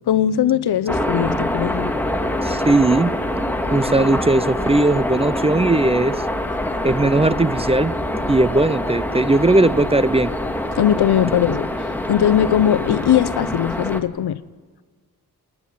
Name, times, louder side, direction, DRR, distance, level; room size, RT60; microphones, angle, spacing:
voice 1, 0.1-1.9 10.8-14.4, left 10 dB, 85° left, 0.7 m, -19 dB
sound 1, 0.9-14.0, left 1 dB, 5° left, 1.9 m, -25 dB
voice 2, 2.4-3.2 3.7-6.1 6.8-7.9 8.3-10.3, right 2 dB, 15° right, 0.6 m, -18 dB
29.0 x 9.8 x 9.3 m
cardioid pair, 50°, 38 cm